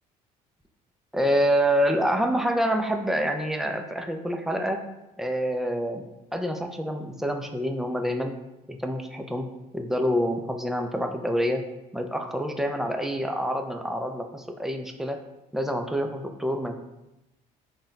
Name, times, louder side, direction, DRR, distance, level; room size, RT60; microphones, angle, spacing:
voice 1, 1.1-4.8 5.2-6.0 6.3-8.3 8.7-9.5 9.7-11.6 11.9-15.2 15.5-16.8, equal, ahead, 5 dB, 0.4 m, -27 dB
3.8 x 2.2 x 3.8 m, 0.96 s
cardioid pair, 95°, 16 cm